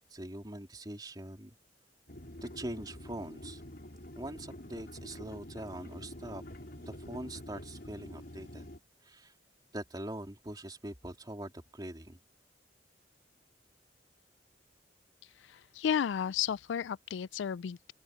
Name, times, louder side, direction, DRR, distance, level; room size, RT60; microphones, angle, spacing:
voice 1, 0.0-1.5 2.4-3.6 4.1-6.4 6.8-8.6 9.0-9.3 9.7-12.2, right 1 dB, 25° right, 3.2 m, -43 dB
sound 1, 2.1-8.8, left 1 dB, 55° left, 4.3 m, -47 dB
voice 2, 15.5-17.9, left 8 dB, 85° left, 0.3 m, -33 dB
open air
head